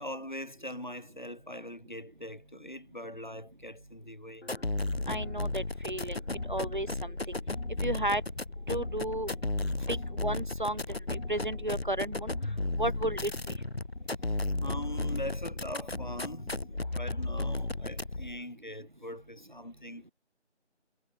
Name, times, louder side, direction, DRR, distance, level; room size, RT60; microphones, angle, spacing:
voice 1, 0.0-4.5 9.8-10.0 14.0-16.6 16.9-20.0, left 1 dB, 40° left, 0.8 m, -42 dB
sound 1, 4.4-18.4, left 2 dB, 60° left, 1.3 m, -34 dB
voice 2, 5.1-6.2 6.5-7.4 7.8-8.2 8.7-9.3 9.9-10.0 10.2-10.8 11.1-12.3 12.8-13.3, right 1 dB, 45° right, 1.1 m, -33 dB
figure-of-eight pair, 180°, 35 cm